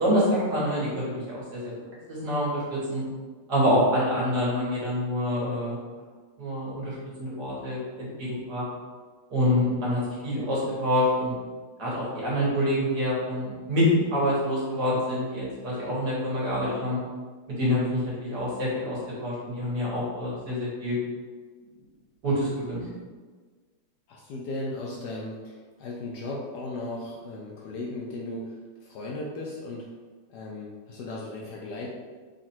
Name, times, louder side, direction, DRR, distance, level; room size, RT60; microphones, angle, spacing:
voice 1, 0.0-1.7 2.1-3.0 3.5-5.8 6.4-8.6 9.3-11.3 11.8-17.0 17.6-21.0 22.2-22.8, equal, 55° right, -7 dB, 1.9 m, -26 dB
voice 2, 24.1-29.9 30.3-31.9, left 2 dB, 70° left, -2 dB, 1.0 m, -36 dB
3.9 x 2.5 x 4.3 m, 1.4 s
omnidirectional pair, 2.2 m